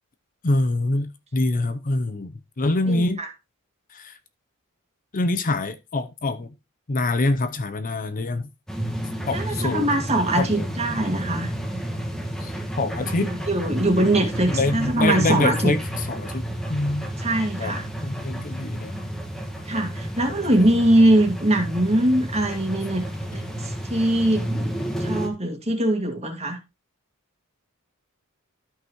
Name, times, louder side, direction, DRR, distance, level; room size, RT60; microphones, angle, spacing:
voice 1, 0.4-3.2 3.9-4.1 5.1-6.5 6.9-8.5 9.3-9.9 10.4-10.6 12.4-13.3 14.5-17.1 17.6-17.7 18.0-18.9 20.5-20.8, left 2 dB, 40° left, 0.7 m, -25 dB
sound 1, 8.7-25.3, equal, ahead, 1.5 m, -31 dB
voice 2, 9.3-11.5 13.0-15.8 17.2-17.8 19.7-23.0 23.3-24.7 25.0-26.6, right 1 dB, 30° right, 2.1 m, -22 dB
13.0 x 5.9 x 3.0 m
head